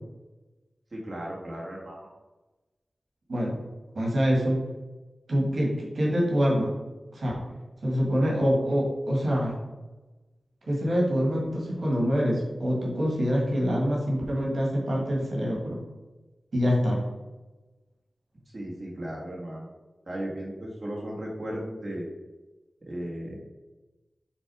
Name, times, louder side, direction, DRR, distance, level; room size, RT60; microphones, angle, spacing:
voice 1, 0.9-2.1 18.5-19.7 20.1-22.1 22.8-23.4, right 1 dB, 30° right, -4 dB, 1.6 m, -36 dB
voice 2, 3.9-4.6 5.3-6.7 7.1-7.4 7.8-9.6 10.7-15.8 16.5-17.0, equal, 60° right, -2 dB, 1.7 m, -25 dB
6.2 x 3.6 x 4.8 m, 1.1 s
wide cardioid pair, 110°, 0 cm